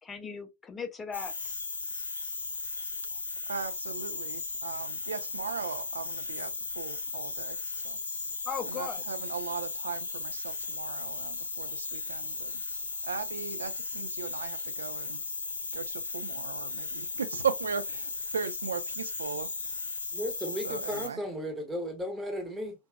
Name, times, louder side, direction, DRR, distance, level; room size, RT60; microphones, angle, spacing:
voice 1, 0.0-1.6 8.4-9.0, left 6 dB, 15° left, 0.5 m, -38 dB
sound 1, 1.1-21.1, left 3 dB, 75° left, 0.5 m, -36 dB
voice 2, 3.5-8.0 8.7-12.7 13.0-15.2 15.7-19.5 20.6-21.2, right 6 dB, 70° right, 0.3 m, -37 dB
voice 3, 20.1-22.7, equal, 10° right, 0.9 m, -35 dB
2.7 x 2.2 x 2.2 m
figure-of-eight pair, 90°, 0 cm